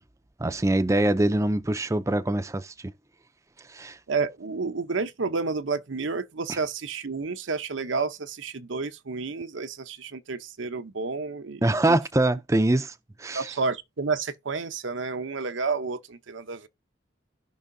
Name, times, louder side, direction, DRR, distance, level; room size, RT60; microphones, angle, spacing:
voice 1, 0.4-2.9 3.7-4.0 6.5-6.6 11.6-13.5, right 1 dB, 15° right, 0.4 m, -24 dB
voice 2, 4.1-12.0 13.3-16.7, right 4 dB, 85° right, 0.8 m, -30 dB
16.0 x 5.5 x 2.6 m
head